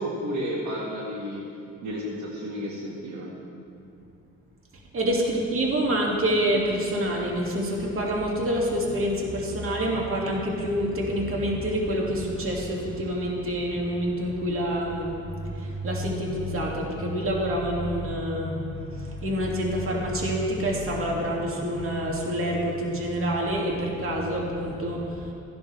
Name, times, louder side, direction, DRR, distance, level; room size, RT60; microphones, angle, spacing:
voice 1, 0.0-1.4 1.8-3.3, equal, 75° right, -3 dB, 1.8 m, -32 dB
voice 2, 4.9-25.3, equal, 45° right, -2 dB, 2.3 m, -27 dB
14.5 x 11.5 x 3.4 m, 2.6 s
cardioid pair, 90°, 30 cm